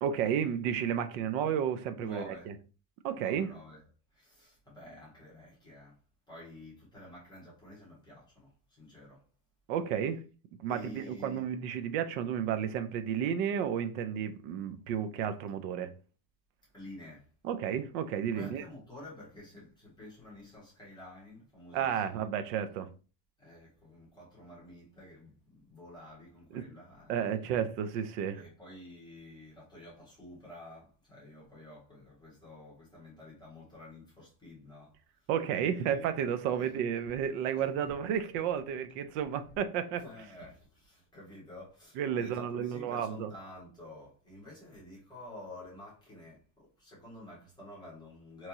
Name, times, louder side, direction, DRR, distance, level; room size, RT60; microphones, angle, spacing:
voice 1, 0.0-2.5 3.0-3.5 9.7-10.2 10.6-15.9 17.4-18.6 21.7-22.9 26.5-26.6 27.1-28.4 35.3-40.0 42.0-43.3, right 8 dB, 50° right, 0.4 m, -32 dB
voice 2, 2.0-2.5 3.1-3.8 4.1-5.9 6.3-9.2 10.7-11.4 16.7-17.3 18.3-22.2 23.4-27.5 28.3-34.9 35.7-36.2 36.5-36.7 37.5-37.6 40.0-48.5, left 1 dB, 10° left, 1.6 m, -50 dB
3.4 x 3.0 x 2.7 m
supercardioid pair, 155°, 49 cm